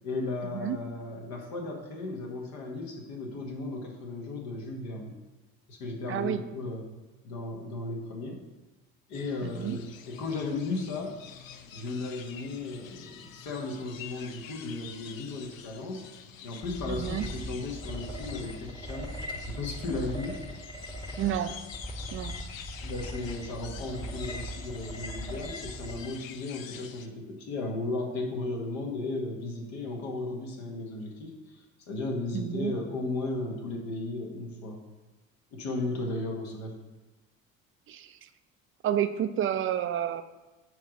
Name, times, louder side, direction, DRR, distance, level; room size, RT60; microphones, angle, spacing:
voice 1, 0.0-5.2 5.7-6.9 7.2-8.4 9.1-11.2 11.7-16.1 16.4-20.4 22.8-34.8 35.5-36.8, left 2 dB, 55° left, 0 dB, 1.7 m, -35 dB
voice 2, 6.1-6.4 9.4-9.8 16.9-17.3 21.2-21.5 22.1-22.3 32.3-32.7 37.9-38.3 38.8-40.2, right 10 dB, 30° right, 10 dB, 0.6 m, -30 dB
sound 1, 9.1-27.1, left 8 dB, 75° left, 0.6 m, -47 dB
sound 2, 16.6-26.1, equal, 10° left, 1.3 m, -39 dB
9.4 x 3.3 x 5.1 m, 1.1 s
figure-of-eight pair, 60°, 40 cm